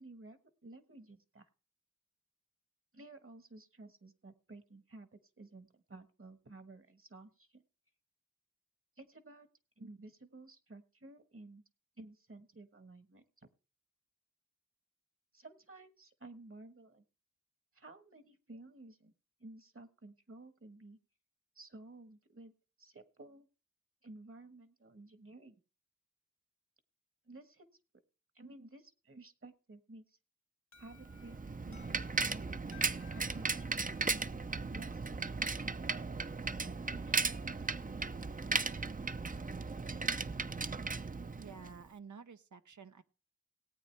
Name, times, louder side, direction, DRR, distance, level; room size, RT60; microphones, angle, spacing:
voice 1, 0.0-1.5 2.9-7.6 9.0-9.5 9.8-11.6 12.0-13.5 15.3-17.0 17.7-19.1 19.4-21.0 21.5-23.5 24.0-25.5 27.2-27.7 28.3-30.2 30.8-32.4 33.1-34.4 34.7-35.8 36.9-37.1, right 2 dB, 50° right, 10 dB, 1.3 m, -54 dB
Alarm, 30.7-35.5, left 8 dB, 65° left, 1.6 m, -62 dB
Bicycle, 30.9-41.8, right 4 dB, 30° right, 0.5 m, -36 dB
voice 2, 41.4-43.0, right 5 dB, 85° right, 10 dB, 0.8 m, -51 dB
18.0 x 8.6 x 3.3 m, 0.34 s
wide cardioid pair, 50°, 29 cm